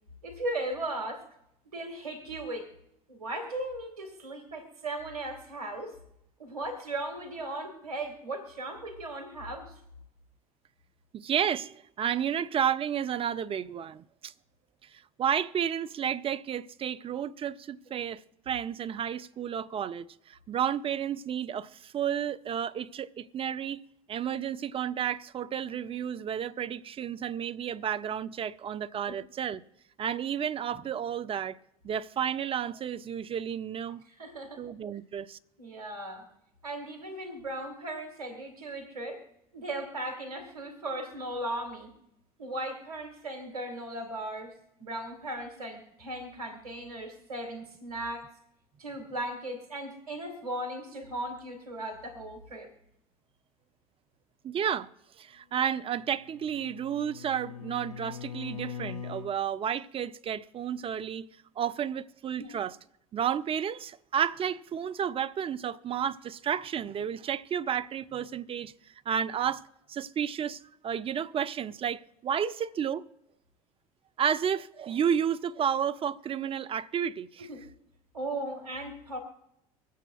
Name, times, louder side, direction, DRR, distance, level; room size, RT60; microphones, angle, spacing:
voice 1, 0.2-1.2 1.7-2.7 3.1-6.0 6.4-9.8 29.1-29.2 34.1-34.6 35.6-36.3 36.6-39.2 39.5-41.9 42.4-48.3 48.8-52.7 62.4-62.6 77.4-77.7 78.1-79.2, right 1 dB, 85° right, 1.8 m, -37 dB
voice 2, 11.1-14.3 14.9-23.8 24.1-29.6 30.0-31.6 31.8-34.0 34.6-35.4 54.4-54.9 55.2-61.3 61.6-62.8 63.1-68.7 69.1-69.6 69.9-73.0 74.2-77.5, right 8 dB, 30° right, 0.5 m, -31 dB
Bowed string instrument, 55.9-59.3, left 8 dB, 85° left, 0.6 m, -42 dB
25.0 x 8.3 x 2.3 m
hypercardioid pair, 70°, 18 cm